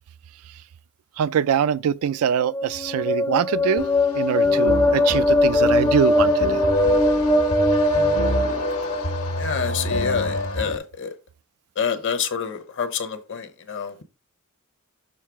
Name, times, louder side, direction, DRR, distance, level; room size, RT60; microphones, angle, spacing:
voice 1, 1.2-3.9 4.2-6.6, right 8 dB, 70° right, 0.3 m, -23 dB
sound 1, 2.4-9.3, left 1 dB, 10° left, 0.4 m, -21 dB
sound 2, 3.8-10.8, left 2 dB, 75° left, 1.2 m, -26 dB
voice 2, 9.4-11.1 11.8-14.0, left 6 dB, 55° left, 0.9 m, -27 dB
6.6 x 3.2 x 4.7 m
head